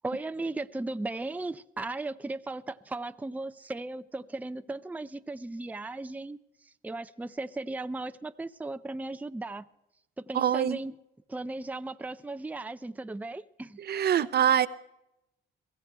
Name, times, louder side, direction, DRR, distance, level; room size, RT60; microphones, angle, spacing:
voice 1, 0.0-6.4 6.6-9.7 10.2-11.0 11.3-13.8 14.2-14.3, right 2 dB, 10° right, 11 dB, 0.5 m, -36 dB
voice 2, 10.3-10.8 13.8-14.7, right 9 dB, 55° right, 15 dB, 0.7 m, -24 dB
23.0 x 15.5 x 3.4 m, 0.86 s
cardioid pair, 90°, 20 cm